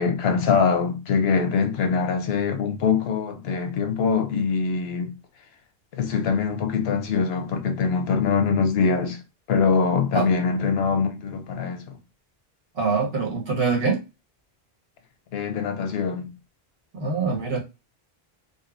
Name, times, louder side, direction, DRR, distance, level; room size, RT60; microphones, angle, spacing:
voice 1, 0.0-5.1 5.9-9.2 9.5-12.0 15.3-16.3, left 5 dB, 85° left, 0.9 m, -23 dB
voice 2, 12.7-14.0 16.9-17.6, right 4 dB, 75° right, 1.3 m, -24 dB
2.7 x 2.3 x 2.4 m
omnidirectional pair, 1.0 m